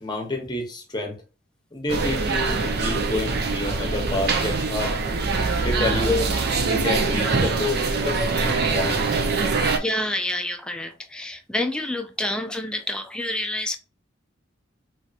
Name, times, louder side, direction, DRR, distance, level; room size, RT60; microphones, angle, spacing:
voice 1, 0.0-1.2 1.7-5.0 5.6-6.1 6.7-9.0, left 2 dB, 20° left, 0.9 m, -29 dB
sound 1, 1.9-9.8, right 3 dB, 55° right, 0.5 m, -23 dB
voice 2, 9.7-13.8, left 1 dB, 5° left, 0.4 m, -28 dB
3.1 x 2.8 x 2.4 m
head